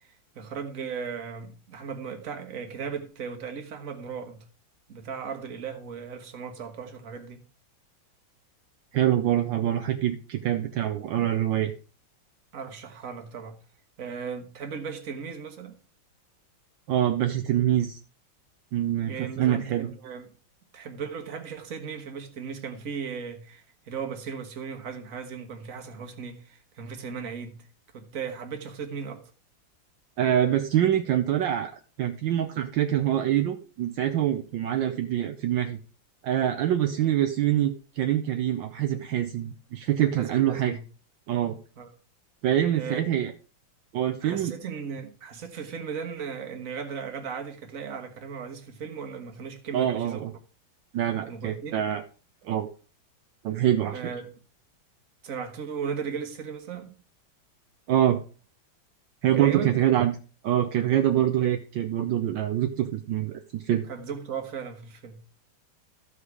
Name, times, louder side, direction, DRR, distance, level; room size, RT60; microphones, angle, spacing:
voice 1, 0.3-4.4 4.9-7.4 12.5-13.6 14.0-15.7 19.1-20.2 20.7-27.7 27.9-29.2 40.2-40.8 41.8-41.9 42.7-43.0 44.2-50.2 51.3-51.8 53.9-54.2 55.2-57.0 59.3-59.7 63.9-65.2, right 6 dB, 45° right, 1.6 m, -36 dB
voice 2, 8.9-11.7 16.9-18.0 18.7-19.9 30.2-35.8 36.2-40.8 41.3-41.6 42.4-43.3 43.9-44.5 49.7-50.3 50.9-52.0 52.4-52.7 53.4-54.0 57.9-58.2 59.2-60.2 60.4-63.8, right 11 dB, 75° right, 1.4 m, -25 dB
14.0 x 5.0 x 4.8 m
omnidirectional pair, 2.2 m